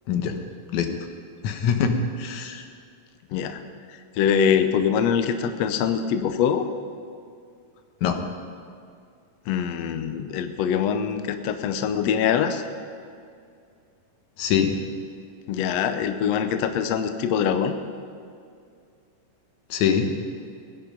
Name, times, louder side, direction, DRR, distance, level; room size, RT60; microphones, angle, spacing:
voice 1, 1.4-2.6 8.0-8.2 14.4-14.7 19.7-20.1, left 7 dB, 70° left, 6 dB, 2.2 m, -23 dB
voice 2, 4.2-6.7 9.5-12.6 15.5-17.7, left 8 dB, 85° left, 9 dB, 1.5 m, -23 dB
20.0 x 10.5 x 5.3 m, 2.3 s
omnidirectional pair, 3.9 m